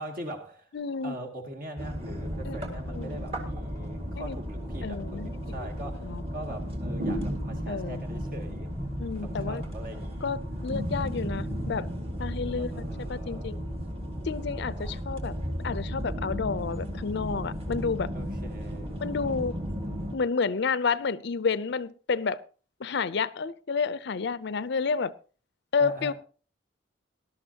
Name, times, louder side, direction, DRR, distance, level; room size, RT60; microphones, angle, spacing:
voice 1, 0.0-0.7 1.0-8.7 9.2-10.4 12.3-13.5 18.1-19.0 25.8-26.1, right 1 dB, 50° right, 2.2 m, -42 dB
voice 2, 0.7-1.2 2.4-3.3 4.2-4.4 4.8-5.3 5.6-5.7 6.0-6.2 7.7-8.0 9.0-9.6 10.2-11.9 12.2-12.7 13.1-13.6 14.2-15.3 15.6-18.1 19.0-19.5 20.1-22.4 22.8-25.1 25.7-26.1, left 5 dB, 65° left, 0.5 m, -30 dB
sound 1, 1.8-20.2, equal, 30° right, 2.1 m, -34 dB
19.0 x 11.5 x 2.8 m
head